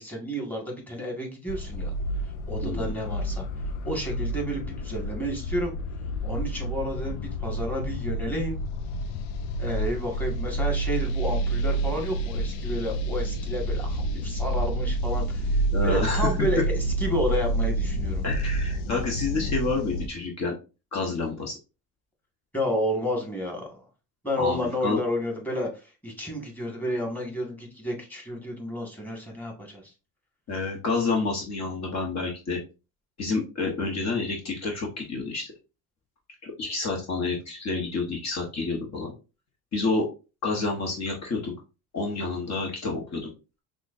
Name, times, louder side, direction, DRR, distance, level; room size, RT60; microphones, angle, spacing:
voice 1, 0.0-1.9 2.5-3.5 3.8-5.7 6.2-8.6 9.6-18.2 22.5-23.8 24.2-29.8, equal, 5° left, -1 dB, 1.8 m, -31 dB
sound 1, 1.5-20.1, right 1 dB, 75° left, 0.6 m, -29 dB
voice 2, 2.6-3.0 15.7-16.3 18.2-20.5 20.9-21.5 24.4-25.0 30.5-32.6 33.2-35.4 36.4-39.1 39.7-40.1 40.4-41.5 41.9-43.2, left 3 dB, 40° left, -1 dB, 1.3 m, -29 dB
5.9 x 2.4 x 2.6 m, 0.31 s
supercardioid pair, 90°, 40 cm